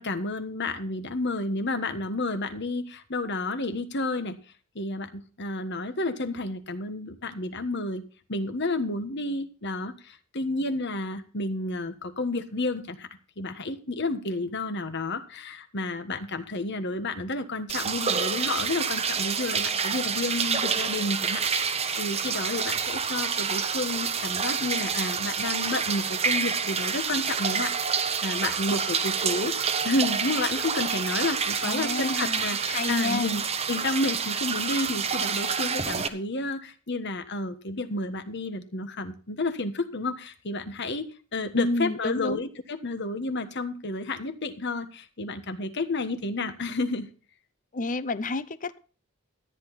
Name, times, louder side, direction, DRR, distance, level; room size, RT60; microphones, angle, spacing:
voice 1, 0.0-4.4 4.7-8.0 8.3-13.1 13.4-29.5 29.8-47.1, left 2 dB, 50° left, 9 dB, 1.4 m, -31 dB
sound 1, 17.7-36.1, right 6 dB, 30° right, 0.9 m, -28 dB
voice 2, 31.6-33.4 41.6-42.4 47.7-48.8, left 2 dB, 35° left, 15 dB, 0.6 m, -30 dB
14.0 x 10.0 x 4.1 m, 0.38 s
head